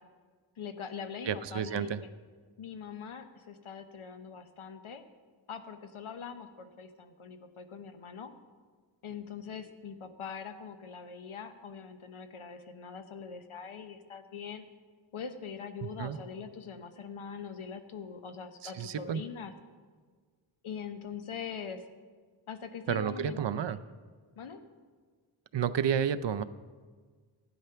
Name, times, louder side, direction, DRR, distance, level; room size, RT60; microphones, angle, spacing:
voice 1, 0.6-2.1 2.6-5.0 5.5-8.3 9.0-14.7 15.1-19.5 20.6-21.9 22.5-23.8 24.4-24.6, left 6 dB, 85° left, 9 dB, 1.0 m, -42 dB
voice 2, 1.3-2.0 16.0-16.2 18.6-19.2 22.9-23.8 25.5-26.4, right 8 dB, 60° right, 14 dB, 0.6 m, -31 dB
12.5 x 9.3 x 5.7 m, 1.5 s
cardioid pair, 65°, 48 cm